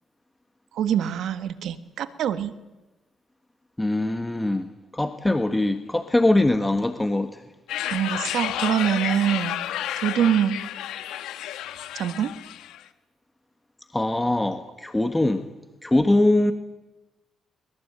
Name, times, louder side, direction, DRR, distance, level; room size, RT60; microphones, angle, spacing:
voice 1, 0.7-2.5 7.9-9.6 10.0-10.6 11.9-12.3, right 9 dB, 75° right, 11 dB, 1.5 m, -24 dB
voice 2, 3.8-7.4 13.9-15.4 15.8-16.5, left 1 dB, 10° left, 8 dB, 1.5 m, -22 dB
sound 1, 7.7-12.8, left 12 dB, 90° left, 1.3 m, -31 dB
22.0 x 21.0 x 9.0 m, 1.1 s
cardioid pair, 90°, 0 cm